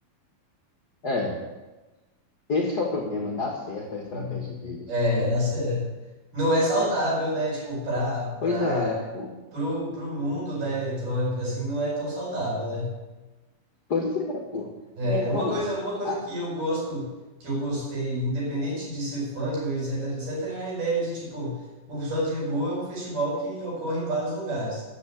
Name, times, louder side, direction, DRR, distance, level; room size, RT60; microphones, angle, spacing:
voice 1, 1.0-1.4 2.5-4.9 6.7-7.0 8.4-9.3 13.9-14.7 15.0-15.6 16.0-16.2, left 3 dB, 65° left, 1 dB, 1.0 m, -29 dB
voice 2, 4.1-4.5 4.9-5.8 6.3-8.9 9.5-12.9 15.0-17.1 17.4-21.5 21.9-24.8, equal, 65° right, -4 dB, 6.4 m, -28 dB
11.5 x 6.2 x 8.9 m, 1.1 s
omnidirectional pair, 3.9 m